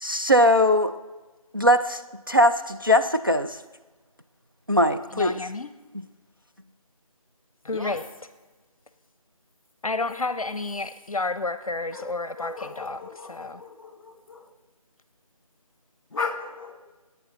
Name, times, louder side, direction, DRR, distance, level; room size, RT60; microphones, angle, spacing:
voice 1, 0.0-1.0 1.5-2.0 2.3-3.6 4.7-5.4, left 1 dB, 35° right, 7 dB, 0.4 m, -20 dB
voice 2, 5.1-5.7 7.6-8.0 9.8-13.0 13.3-13.6, left 3 dB, 65° left, 12 dB, 0.7 m, -30 dB
voice 3, 7.6-8.0 11.9-14.5 16.1-16.7, left 4 dB, 40° left, 5 dB, 1.6 m, -36 dB
17.5 x 8.7 x 3.8 m, 1.2 s
figure-of-eight pair, 170°, 19 cm